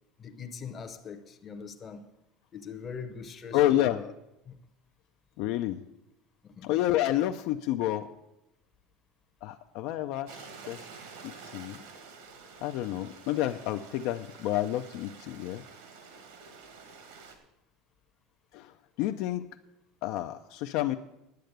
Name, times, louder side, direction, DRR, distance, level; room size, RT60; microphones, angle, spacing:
voice 1, 0.2-2.1 2.5-4.1 4.4-4.6 6.4-6.7, left 6 dB, 20° left, 0.8 m, -42 dB
voice 2, 3.5-4.0 5.4-5.8 6.6-8.1 9.4-10.9 11.2-11.8 12.6-15.6 18.5-19.5 20.0-21.0, left 13 dB, 50° left, 0.5 m, -29 dB
Stream, 10.3-17.4, right 5 dB, 75° right, 2.0 m, -49 dB
10.5 x 7.6 x 8.0 m
cardioid pair, 180°, 0 cm